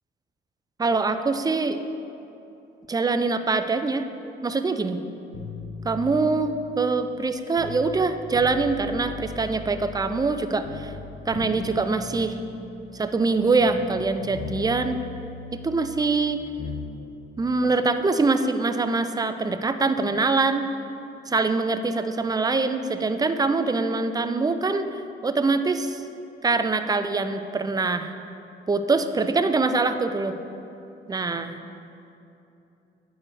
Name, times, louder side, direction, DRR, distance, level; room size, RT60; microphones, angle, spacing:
voice 1, 0.8-1.8 2.9-4.0 4.4-5.0 5.8-10.9 11.3-12.4 12.9-15.0 15.6-16.4 17.4-20.7 21.3-24.9 25.2-26.0 26.4-28.1 28.7-30.4 31.1-31.6, right 3 dB, 20° right, 9 dB, 0.5 m, -24 dB
sound 1, 5.3-8.0 8.3-10.4 10.6-14.1 14.3-16.9 17.2-17.3, left 4 dB, 65° left, 1.1 m, -38 dB
8.9 x 4.7 x 6.2 m, 2.8 s
cardioid pair, 90°, 20 cm